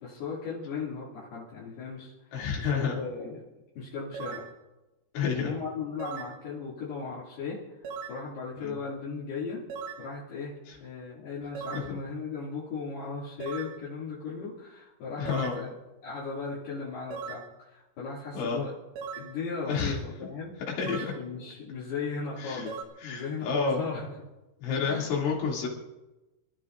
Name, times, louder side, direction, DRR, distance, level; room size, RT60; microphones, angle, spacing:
voice 1, 0.0-3.4 3.8-4.5 5.3-9.7 10.0-10.5 10.8-15.8 16.0-18.7 19.1-20.5 20.8-24.1 24.8-25.1, left 5 dB, 60° left, -8 dB, 4.3 m, -37 dB
voice 2, 2.3-3.0 5.1-5.5 8.6-8.7 11.7-11.8 15.2-15.6 18.3-18.6 19.7-20.0 20.8-21.1 22.4-22.7 23.0-23.9 24.6-25.7, left 5 dB, 75° left, -3 dB, 5.2 m, -29 dB
sound 1, 4.1-4.5 6.0-6.4 7.8-8.2 9.7-10.1 11.6-11.9 13.4-13.8 15.3-15.6 17.1-17.5 19.0-19.3 20.8-21.2 22.7-22.8, right 6 dB, 85° right, 3.9 m, -38 dB
28.5 x 13.5 x 2.6 m, 1.1 s
omnidirectional pair, 5.5 m